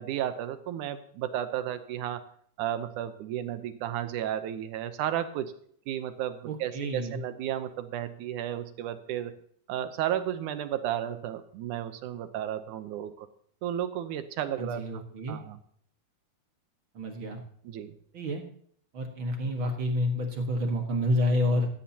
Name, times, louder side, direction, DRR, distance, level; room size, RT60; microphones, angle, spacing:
voice 1, 0.0-2.2 2.6-5.5 5.9-9.3 9.7-13.3 13.6-14.8 15.3-15.6 17.6-18.0, right 11 dB, 75° right, 11 dB, 1.9 m, -33 dB
voice 2, 6.4-7.2 14.6-15.4 16.9-17.4 18.1-18.4 18.9-21.7, left 1 dB, 55° right, 4 dB, 1.5 m, -29 dB
17.0 x 14.5 x 2.9 m, 0.62 s
omnidirectional pair, 4.5 m